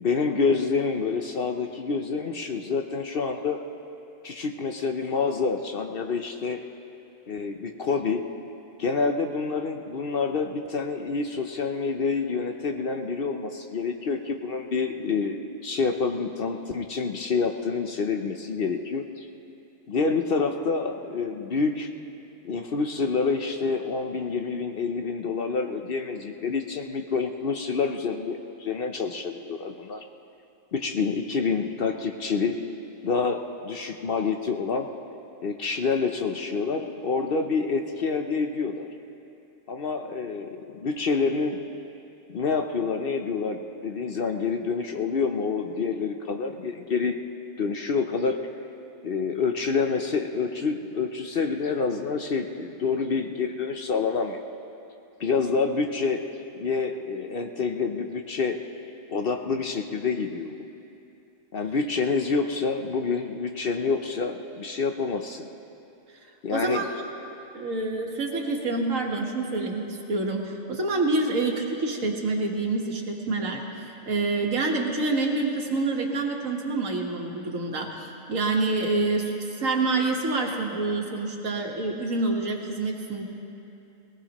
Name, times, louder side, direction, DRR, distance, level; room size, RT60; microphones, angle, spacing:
voice 1, 0.0-3.6 4.2-6.6 7.3-8.2 8.8-19.3 19.9-21.9 22.4-30.0 30.7-32.6 33.0-34.9 35.4-38.9 39.7-41.6 42.3-47.2 47.6-48.4 49.0-54.4 55.2-56.2 56.5-58.6 59.1-60.6 61.5-65.5 66.4-66.8, left 4 dB, 55° left, 5 dB, 0.8 m, -27 dB
voice 2, 66.5-66.8 67.5-83.2, right 3 dB, 80° right, 1 dB, 1.8 m, -27 dB
20.0 x 19.0 x 3.0 m, 2.8 s
omnidirectional pair, 1.4 m